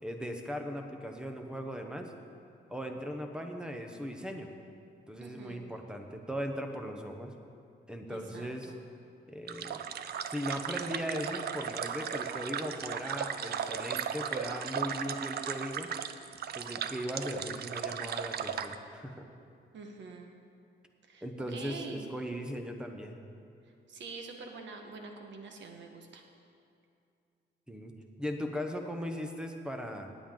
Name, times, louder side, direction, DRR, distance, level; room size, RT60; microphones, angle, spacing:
voice 1, 0.0-2.1 2.7-4.5 5.1-7.3 7.9-8.7 9.3-9.8 10.3-15.9 16.5-19.3 21.2-23.2 27.7-27.9 28.2-30.1, equal, 5° right, 4 dB, 0.8 m, -38 dB
voice 2, 5.2-5.6 8.1-8.8 19.7-20.3 21.0-22.0 23.9-26.2, right 4 dB, 85° right, 3 dB, 1.4 m, -46 dB
sound 1, 9.5-18.7, right 8 dB, 60° right, 0.5 m, -36 dB
18.0 x 8.9 x 3.8 m, 2.5 s
wide cardioid pair, 170°, 19 cm